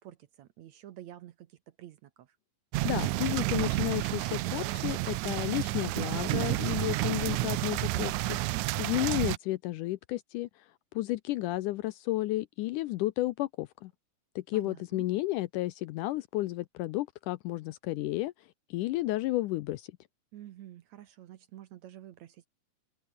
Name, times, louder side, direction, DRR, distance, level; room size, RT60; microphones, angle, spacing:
voice 1, 0.0-2.4 14.5-15.1 20.3-22.5, right 12 dB, 65° right, 1.9 m, -49 dB
sound 1, 2.7-9.4, right 18 dB, 85° right, 1.6 m, -30 dB
voice 2, 2.8-10.5 11.0-13.9 14.4-18.3 18.7-19.9, left 17 dB, 80° left, 1.9 m, -32 dB
open air
omnidirectional pair, 4.1 m